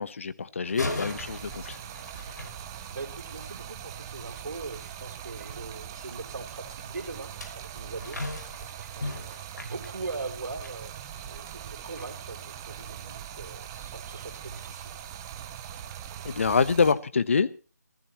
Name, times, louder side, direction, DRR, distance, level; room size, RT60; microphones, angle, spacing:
voice 1, 0.0-1.8 16.2-17.5, left 5 dB, 45° left, 1.0 m, -25 dB
sound 1, 0.6-3.2 7.0-10.8 11.2-11.4 12.0-12.1, left 2 dB, 75° left, 5.7 m, -38 dB
Stream, 0.9-16.9, right 9 dB, 10° right, 0.7 m, -41 dB
voice 2, 2.9-15.0, right 3 dB, 60° right, 4.0 m, -41 dB
26.5 x 15.0 x 3.1 m
figure-of-eight pair, 165°, 10 cm